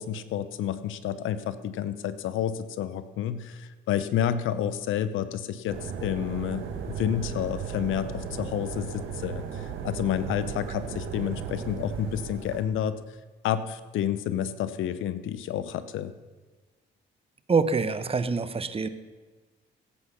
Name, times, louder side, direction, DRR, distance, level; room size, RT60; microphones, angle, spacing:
voice 1, 0.0-13.0 13.4-16.1, left 10 dB, 80° left, 13 dB, 0.8 m, -30 dB
sound 1, 5.7-12.6, right 6 dB, 80° right, 1.5 m, -36 dB
voice 2, 17.5-18.9, right 4 dB, 30° right, 13 dB, 0.9 m, -25 dB
16.0 x 8.3 x 5.8 m, 1.3 s
cardioid pair, 90°, 20 cm